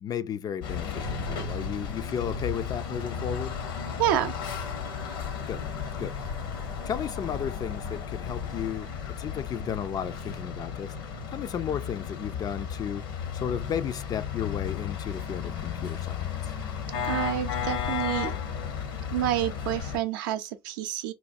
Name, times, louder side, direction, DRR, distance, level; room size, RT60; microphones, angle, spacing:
voice 1, 0.0-3.6 5.5-5.7 6.0-6.2 6.8-16.6, left 8 dB, 35° left, 0.3 m, -34 dB
sound 1, 0.6-20.0, left 7 dB, 70° left, 0.9 m, -34 dB
voice 2, 4.0-4.3 17.1-18.3 19.1-21.1, right 12 dB, 65° right, 0.5 m, -28 dB
4.1 x 2.2 x 2.6 m
figure-of-eight pair, 65°, 12 cm